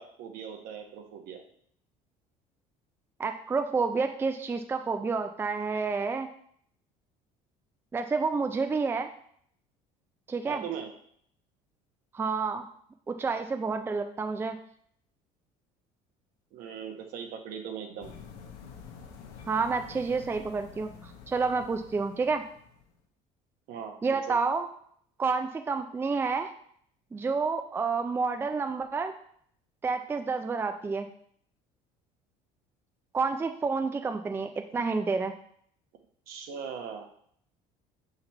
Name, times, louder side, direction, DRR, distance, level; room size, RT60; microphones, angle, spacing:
voice 1, 0.0-1.4 10.4-10.9 16.5-18.1 23.7-24.0 24.3-24.4 36.3-37.1, right 7 dB, 70° right, 4 dB, 1.1 m, -39 dB
voice 2, 3.2-6.3 7.9-9.1 10.3-10.6 12.1-12.7 13.1-14.6 19.5-22.4 24.0-24.7 25.2-26.5 27.1-29.1 29.8-31.1 33.1-35.3, right 4 dB, 15° right, 7 dB, 0.4 m, -29 dB
sound 1, 18.0-23.0, left 6 dB, 80° left, 1.1 m, -48 dB
5.6 x 4.0 x 4.4 m, 0.64 s
cardioid pair, 110°, 15 cm